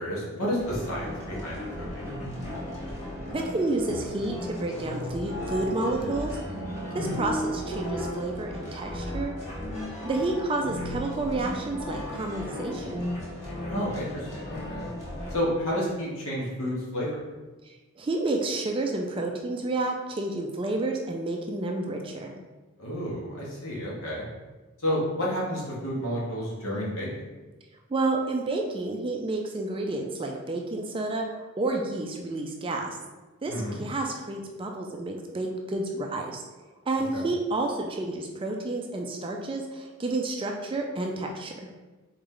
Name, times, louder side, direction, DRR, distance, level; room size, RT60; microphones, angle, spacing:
voice 1, 0.0-2.1 6.9-7.2 13.6-14.9 15.3-17.2 22.8-24.3 24.8-27.1 33.5-33.8 37.0-37.3, equal, 70° left, -5 dB, 1.3 m, -31 dB
sound 1, 0.6-15.4, equal, 30° left, 1.0 m, -35 dB
voice 2, 3.3-6.6 6.9-9.4 10.0-13.1 17.6-22.3 27.9-33.0 33.4-36.4 36.9-41.5, right 2 dB, 25° right, 2 dB, 0.3 m, -30 dB
3.9 x 3.3 x 3.7 m, 1.2 s
head